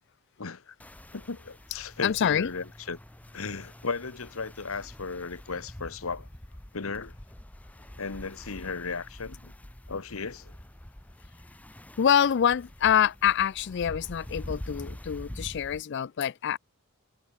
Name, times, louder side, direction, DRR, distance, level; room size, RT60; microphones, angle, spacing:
voice 1, 0.4-0.7 1.1-3.0 3.3-6.3 6.7-7.1 8.0-9.5 9.9-10.6, left 4 dB, 80° left, 1.2 m, -35 dB
sound 1, 0.8-15.8, left 1 dB, 5° left, 0.6 m, -45 dB
voice 2, 2.0-2.5 12.0-16.6, left 8 dB, 55° left, 0.4 m, -25 dB
head